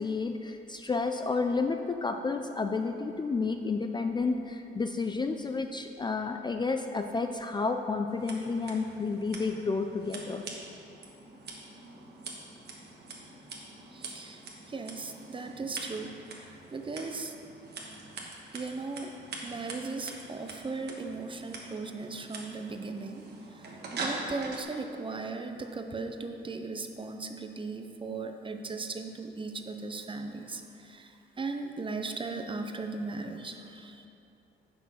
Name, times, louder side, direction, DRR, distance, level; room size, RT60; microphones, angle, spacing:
voice 1, 0.0-10.4, left 4 dB, 20° left, 5 dB, 0.4 m, -31 dB
Scissors, 8.1-24.6, right 2 dB, 55° right, 1.4 m, -44 dB
voice 2, 13.9-14.4 14.7-16.1 16.4-17.3 18.5-19.1 19.4-23.2 23.5-23.6 23.9-34.1, right 3 dB, 25° right, 5 dB, 0.7 m, -37 dB
7.1 x 6.0 x 5.6 m, 2.8 s
cardioid pair, 90°, 20 cm